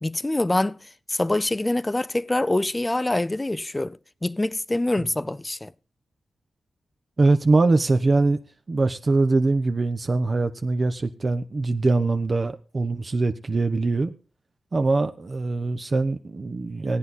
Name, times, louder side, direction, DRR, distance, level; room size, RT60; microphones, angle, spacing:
voice 1, 0.0-5.7, left 2 dB, 20° left, 0.5 m, -25 dB
voice 2, 7.2-8.4 8.7-14.1 14.7-17.0, right 3 dB, 40° right, 0.8 m, -22 dB
17.5 x 9.5 x 4.2 m
cardioid pair, 85°, 0 cm